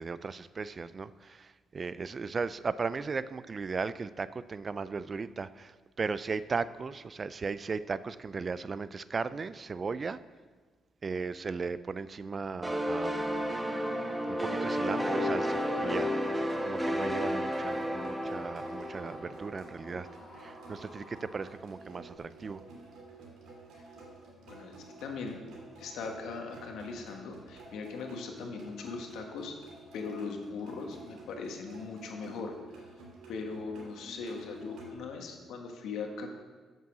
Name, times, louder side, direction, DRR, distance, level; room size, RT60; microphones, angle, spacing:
voice 1, 0.0-10.2 11.0-13.6 14.3-20.1 20.4-22.6, right 4 dB, 35° right, 15 dB, 0.4 m, -37 dB
sound 1, 12.6-20.1, equal, 10° right, 1.1 m, -32 dB
sound 2, 12.9-21.6, left 1 dB, 20° left, 3.4 m, -55 dB
sound 3, 15.4-34.9, right 2 dB, 75° right, 3.0 m, -51 dB
voice 2, 25.0-25.4 25.8-29.5 29.9-32.6 33.3-36.3, left 4 dB, 80° left, 3 dB, 1.5 m, -39 dB
8.2 x 7.5 x 6.2 m, 1.4 s
cardioid pair, 90°, 0 cm